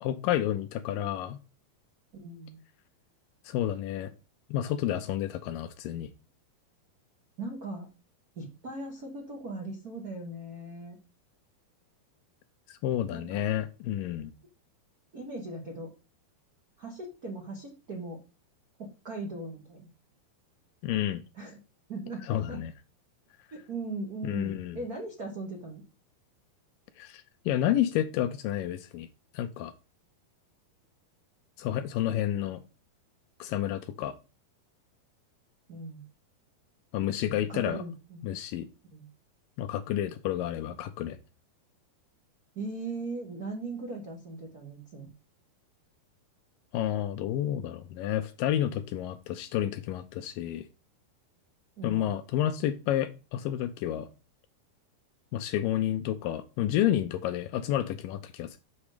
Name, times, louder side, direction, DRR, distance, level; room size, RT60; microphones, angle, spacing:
voice 1, 0.0-1.4 3.5-4.1 4.5-6.1 12.7-14.3 20.8-21.2 22.3-22.7 24.2-24.8 27.0-29.1 29.3-29.7 31.6-32.6 33.4-34.1 36.9-37.8 38.2-38.7 39.6-41.2 46.7-50.7 51.8-54.1 55.3-58.6, left 11 dB, 80° left, 10 dB, 2.1 m, -30 dB
voice 2, 2.2-2.6 7.4-7.9 8.3-11.0 13.1-13.4 15.1-15.9 16.8-18.2 18.8-19.9 21.3-21.6 21.9-22.6 23.5-25.8 35.7-36.0 37.5-38.2 38.9-39.1 42.5-45.1 51.8-52.1, right 2 dB, 90° right, 0 dB, 0.8 m, -39 dB
7.2 x 6.3 x 4.9 m, 0.31 s
omnidirectional pair, 4.4 m